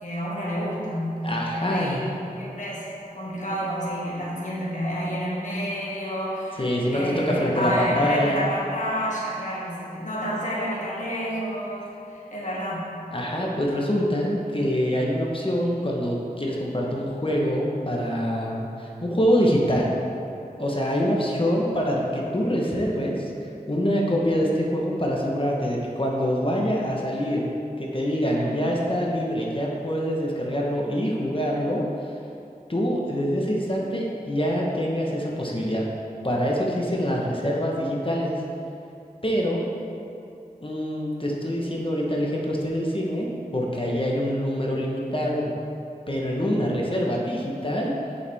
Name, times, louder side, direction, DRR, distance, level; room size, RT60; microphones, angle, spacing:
voice 1, 0.0-2.9 3.1-13.0 28.2-28.6, equal, 55° left, -6 dB, 2.0 m, -29 dB
voice 2, 1.2-2.1 6.6-8.5 13.1-19.9 20.6-23.3 23.7-27.4 27.8-31.9 32.7-35.8 36.2-38.4 39.2-39.7 40.6-45.5 46.1-47.9, equal, 35° left, -3 dB, 1.2 m, -25 dB
8.3 x 6.9 x 3.6 m, 2.6 s
wide cardioid pair, 45°, 16 cm